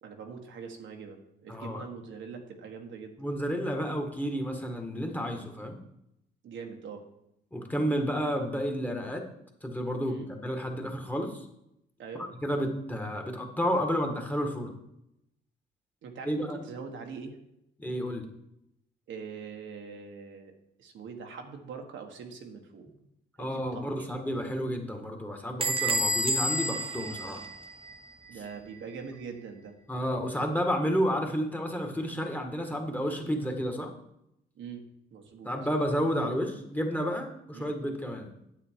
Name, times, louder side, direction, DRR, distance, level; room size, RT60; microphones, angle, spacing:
voice 1, 0.0-3.2 6.4-7.0 10.1-10.3 12.0-12.3 16.0-17.4 19.1-20.5 20.8-22.9 23.4-24.2 27.3-27.4 28.3-29.7 34.5-34.8 35.1-35.5 37.5-37.7, right 5 dB, 75° right, 3 dB, 1.6 m, -43 dB
voice 2, 1.5-1.8 3.2-5.8 7.5-9.2 9.6-11.5 12.4-14.7 16.2-16.6 17.8-18.3 23.4-27.4 29.9-33.9 35.4-38.3, equal, 10° left, 3 dB, 1.7 m, -31 dB
Bell / Squeak, 25.6-28.1, right 1 dB, 25° right, 1.1 m, -30 dB
9.7 x 8.1 x 4.7 m, 0.81 s
cardioid pair, 90°, 20 cm